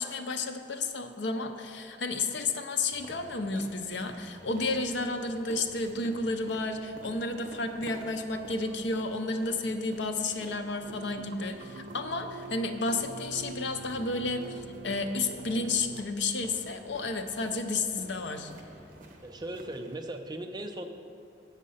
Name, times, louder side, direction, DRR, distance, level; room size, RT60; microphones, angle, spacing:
voice 1, 0.0-18.5, left 3 dB, 75° left, 7 dB, 0.7 m, -32 dB
sound 1, 2.9-19.9, right 1 dB, 50° right, 1.0 m, -50 dB
sound 2, 10.8-16.0, right 4 dB, 80° right, 0.5 m, -45 dB
voice 2, 19.2-20.9, right 1 dB, 25° right, 4 dB, 0.6 m, -38 dB
7.4 x 6.5 x 5.5 m, 2.6 s
head